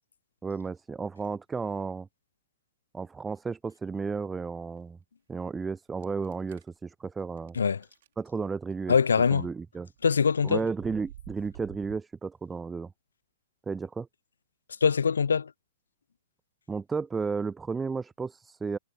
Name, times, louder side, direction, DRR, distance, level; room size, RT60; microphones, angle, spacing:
voice 1, 0.4-2.1 2.9-5.0 5.3-7.6 8.2-9.0 9.3-9.9 10.4-12.9 13.7-14.1 16.7-18.8, right 5 dB, 10° right, 0.3 m, -33 dB
sound 1, 6.0-6.7 7.4-7.5 7.8-8.1 8.7-9.0 9.9-12.0, right 13 dB, 55° right, 3.3 m, -49 dB
voice 2, 8.9-9.5 10.0-10.6 14.8-15.5, left 6 dB, 70° left, 0.4 m, -23 dB
figure-of-eight pair, 110°, 0 cm